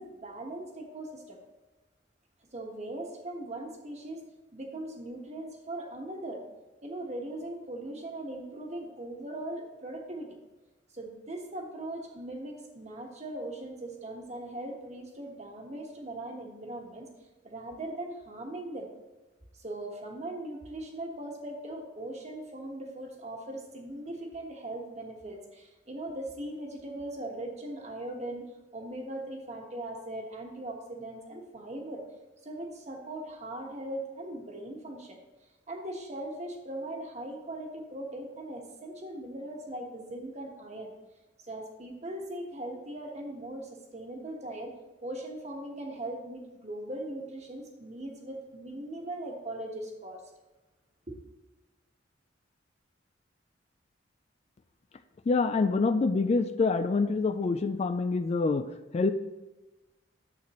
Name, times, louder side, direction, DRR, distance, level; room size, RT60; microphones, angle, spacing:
voice 1, 0.0-1.4 2.5-4.2 4.5-6.4 6.8-10.4 10.9-17.1 17.4-18.9 19.5-32.0 32.4-35.2 35.7-40.9 41.4-44.7 45.0-50.2 51.1-51.2, right 1 dB, 40° right, 2 dB, 1.3 m, -39 dB
voice 2, 55.3-58.7 58.9-59.1, left 4 dB, 35° left, 10 dB, 0.3 m, -26 dB
10.0 x 7.5 x 3.0 m, 1.1 s
head